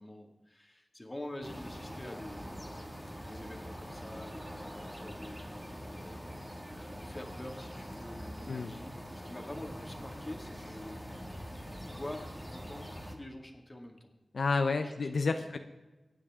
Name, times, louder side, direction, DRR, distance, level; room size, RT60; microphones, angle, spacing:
voice 1, 0.0-2.6 3.2-11.0 11.8-14.1 14.8-15.1 15.4-15.6, left 1 dB, 20° left, 2 dB, 2.1 m, -46 dB
sound 1, 1.4-13.1, equal, 5° right, 2.1 m, -44 dB
voice 2, 14.3-15.6, left 4 dB, 75° left, 7 dB, 0.7 m, -30 dB
23.0 x 9.7 x 3.7 m, 1.1 s
wide cardioid pair, 85°, 0 cm